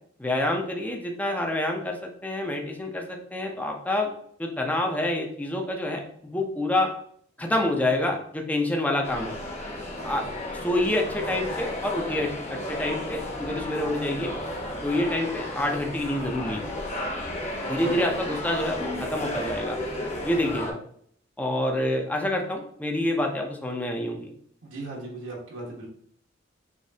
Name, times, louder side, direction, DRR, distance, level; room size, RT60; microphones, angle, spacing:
voice 1, 0.2-4.1 4.4-6.9 7.4-9.3 10.0-10.2 10.6-14.3 14.8-16.7 17.7-19.8 20.2-20.8 21.4-24.3, left 1 dB, 10° left, 1 dB, 0.5 m, -27 dB
sound 1, 9.0-20.7, left 1 dB, 35° left, 1.0 m, -33 dB
voice 2, 24.6-25.9, right 2 dB, 80° right, -2 dB, 1.3 m, -37 dB
4.9 x 3.1 x 2.7 m, 0.64 s
head